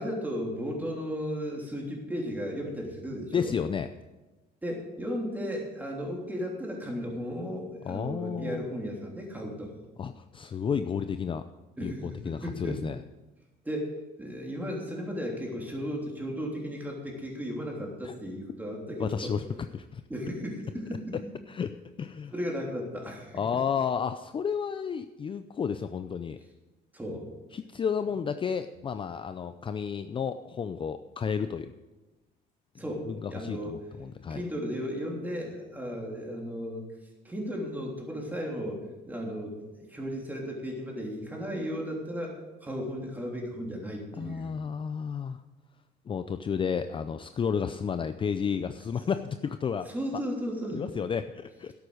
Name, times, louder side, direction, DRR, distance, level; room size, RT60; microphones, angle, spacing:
voice 1, 0.0-3.5 4.6-9.7 11.8-12.8 13.6-19.3 20.1-21.2 22.3-23.4 26.9-27.3 32.8-33.8 34.3-36.8 37.2-44.5 49.8-50.8, equal, 10° right, -1 dB, 3.3 m, -35 dB
voice 2, 3.3-3.9 7.9-8.6 10.0-11.4 11.8-13.0 18.0-18.1 19.0-19.4 19.7-20.0 21.5-21.7 22.0-22.3 23.3-26.4 27.5-31.7 33.0-34.4 44.2-45.4 46.1-50.2 50.7-51.7, left 6 dB, 30° left, 10 dB, 0.5 m, -32 dB
11.5 x 8.5 x 6.4 m, 1.1 s
cardioid pair, 110°, 17 cm